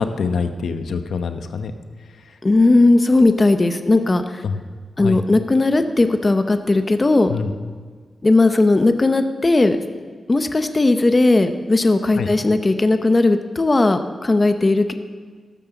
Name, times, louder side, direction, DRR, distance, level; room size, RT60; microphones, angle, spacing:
voice 1, 0.0-1.7 4.4-4.6 5.0-5.2 7.3-7.5 12.2-12.3, left 5 dB, 85° left, 8 dB, 1.0 m, -24 dB
voice 2, 2.4-4.4 5.0-7.3 8.2-9.8 10.3-14.9, left 2 dB, 25° left, 8 dB, 0.7 m, -17 dB
14.5 x 12.5 x 7.0 m, 1.5 s
wide cardioid pair, 165°, 0 cm